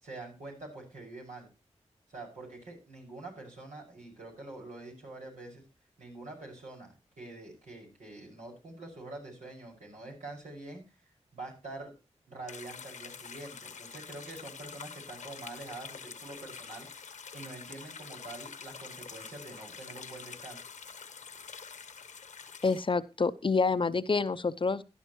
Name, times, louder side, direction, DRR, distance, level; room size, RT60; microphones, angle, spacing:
voice 1, 0.0-1.5 2.1-5.6 6.0-10.8 11.3-11.9 12.3-16.9 17.3-20.6, right 2 dB, 85° right, -2 dB, 6.3 m, -45 dB
sound 1, 12.5-22.9, left 6 dB, 85° left, 1.2 m, -46 dB
voice 2, 22.6-24.8, left 4 dB, 45° left, 14 dB, 0.7 m, -27 dB
15.5 x 11.0 x 3.1 m, 0.29 s
cardioid pair, 40°, 12 cm